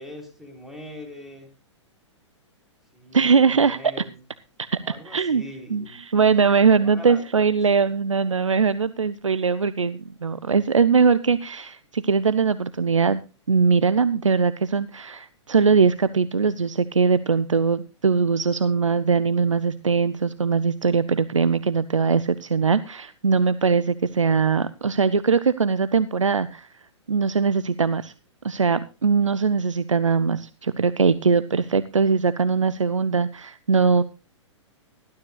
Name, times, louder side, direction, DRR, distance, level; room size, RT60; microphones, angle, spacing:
voice 1, 0.0-1.5 2.9-4.2 4.8-6.0 6.7-7.2 7.7-7.9, left 1 dB, ahead, 2 dB, 3.7 m, -42 dB
voice 2, 3.1-3.8 5.0-5.4 5.7-26.7 27.1-28.1 28.4-34.0, right 5 dB, 85° right, 15 dB, 0.6 m, -21 dB
19.0 x 12.5 x 2.4 m, 0.30 s
figure-of-eight pair, 115°, 16 cm